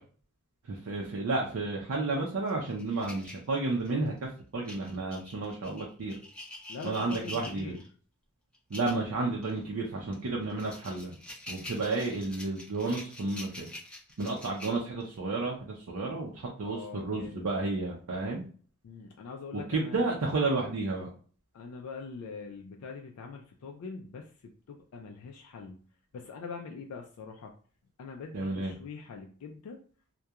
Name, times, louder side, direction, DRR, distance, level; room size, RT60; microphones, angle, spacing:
voice 1, 0.6-6.1 6.8-7.7 8.7-11.1 11.5-13.7 14.2-18.4 19.7-21.1 28.3-28.7, right 3 dB, 80° right, -1 dB, 0.5 m, -32 dB
sound 1, 2.5-4.1 4.6-7.9 8.5-9.0 9.4-9.6 10.1-15.2, left 1 dB, 5° left, 0.5 m, -46 dB
voice 2, 6.7-7.8 16.6-17.6 18.8-20.1 21.5-25.8 26.1-27.5 28.0-29.8, left 4 dB, 85° left, 2 dB, 0.3 m, -43 dB
2.8 x 2.2 x 2.3 m, 0.43 s
head